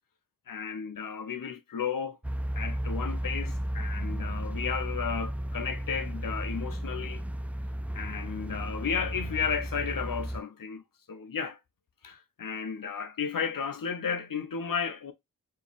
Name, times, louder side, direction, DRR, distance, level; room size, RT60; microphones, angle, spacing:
voice 1, 0.5-2.2 2.5-7.2 7.9-10.8 11.1-11.6 12.0-15.1, left 6 dB, 75° left, 1.0 m, -33 dB
sound 1, 2.2-10.4, equal, 5° right, 0.3 m, -34 dB
4.7 x 3.2 x 3.4 m
wide cardioid pair, 70°, 34 cm